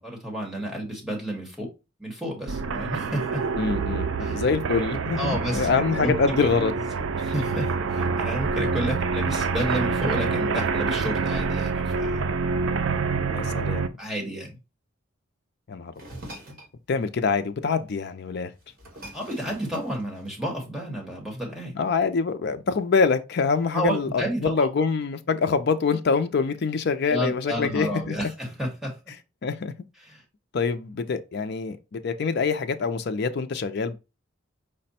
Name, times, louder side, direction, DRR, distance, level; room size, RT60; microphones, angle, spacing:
voice 1, 0.0-1.7 2.0-3.5 4.2-4.4 5.2-6.3 6.6-6.7 7.2-12.2 13.0-13.1 14.0-14.6 19.1-21.7 23.7-24.7 27.1-28.9 30.1-30.2, equal, ahead, 1.3 m, -31 dB
sound 1, 2.5-13.9, right 4 dB, 70° right, 0.4 m, -27 dB
voice 2, 3.6-6.8 13.3-13.9 15.7-15.9 16.9-18.5 21.7-28.2 29.4-29.7 30.5-34.0, left 5 dB, 55° left, 0.4 m, -25 dB
sound 2, 15.9-16.7 18.1-18.2 18.5-20.6, right 1 dB, 45° right, 1.7 m, -44 dB
5.0 x 2.2 x 4.1 m
head